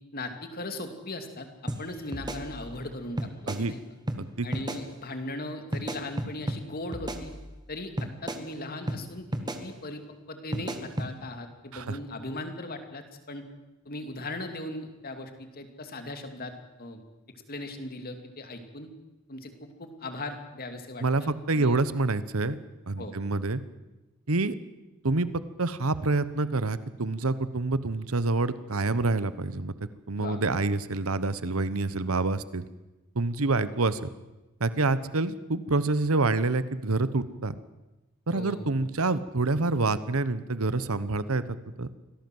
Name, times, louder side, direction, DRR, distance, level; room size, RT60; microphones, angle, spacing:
voice 1, 0.1-3.3 3.6-3.8 4.4-7.3 7.7-9.3 9.6-10.0 10.3-13.4 13.8-16.5 16.8-17.0 17.5-18.9 19.3-21.8 23.0-23.2 30.2-30.4 38.3-38.7, left 2 dB, 45° left, 7 dB, 2.7 m, -38 dB
sound 1, 1.7-1.8 2.1-2.9 3.2-3.6 4.1-4.2 4.5-4.8 5.7-6.6 6.9-7.7 8.0-8.4 8.9-9.0 9.3-9.6 10.5-11.1, right 1 dB, 20° right, 1.7 m, -33 dB
voice 2, 21.0-22.6 22.9-23.6 24.3-24.5 25.0-25.3 25.6-29.7 30.1-32.6 33.1-34.1 34.6-37.5 38.3-41.9, right 3 dB, 70° right, 15 dB, 1.1 m, -27 dB
25.0 x 17.5 x 7.9 m, 1.1 s
head